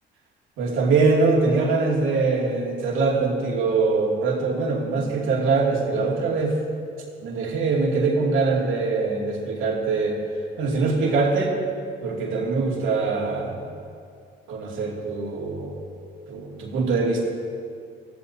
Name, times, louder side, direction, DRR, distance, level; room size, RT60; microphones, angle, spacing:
voice 1, 0.6-6.6 7.2-10.2 10.6-11.5 12.0-13.7 14.5-15.9 16.3-17.2, right 4 dB, 90° right, -2 dB, 2.6 m, -23 dB
21.0 x 14.5 x 2.8 m, 2.4 s
cardioid pair, 90°, 20 cm